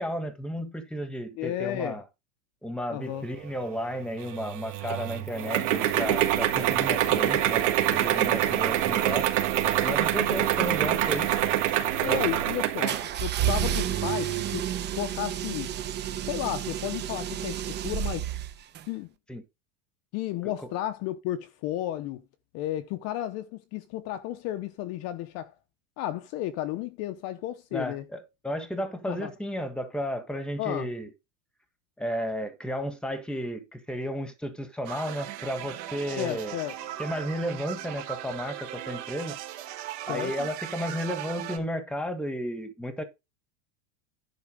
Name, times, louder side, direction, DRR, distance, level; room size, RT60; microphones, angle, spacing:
voice 1, 0.0-2.0 2.6-9.3 9.6-11.3 12.0-12.2 19.3-19.4 20.4-20.7 27.7-31.1 32.0-36.6 37.0-39.4 40.1-43.0, equal, ahead, 1.5 m, -33 dB
voice 2, 1.4-2.0 2.9-3.3 5.3-5.7 11.8-14.7 14.9-15.7 16.3-18.3 18.9-19.1 20.1-22.2 22.5-25.5 26.0-28.0 29.1-29.3 30.6-30.9 36.2-36.7 40.0-40.5, left 13 dB, 40° left, 0.8 m, -33 dB
sound 1, 4.2-13.1, right 12 dB, 80° right, 2.6 m, -25 dB
sound 2, 12.9-18.8, right 10 dB, 30° right, 1.0 m, -30 dB
sound 3, 34.8-41.6, right 13 dB, 50° right, 2.0 m, -38 dB
11.0 x 5.0 x 4.9 m
supercardioid pair, 155°, 37 cm